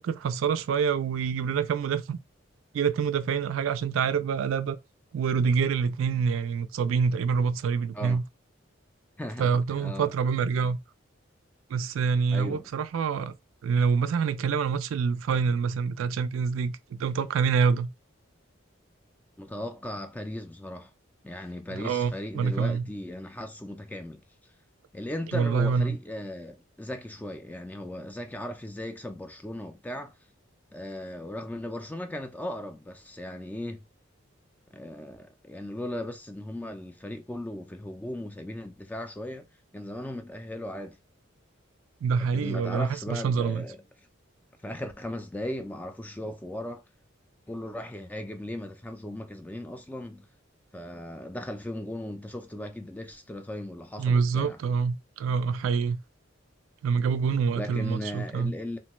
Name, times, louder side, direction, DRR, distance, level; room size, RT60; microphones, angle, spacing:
voice 1, 0.0-2.2 2.7-4.8 5.1-8.2 9.4-10.8 11.7-13.3 13.6-17.9 21.7-22.9 25.3-26.0 42.0-43.7 54.0-56.0 56.8-58.5, right 6 dB, 80° right, 0.3 m, -26 dB
voice 2, 9.2-10.1 12.3-12.7 19.4-20.9 21.2-24.2 24.9-30.1 30.7-33.8 34.7-39.5 39.7-41.0 42.2-43.8 44.6-46.8 47.5-50.3 50.7-54.6 57.5-58.8, left 1 dB, 10° left, 0.3 m, -37 dB
3.0 x 2.2 x 2.9 m
head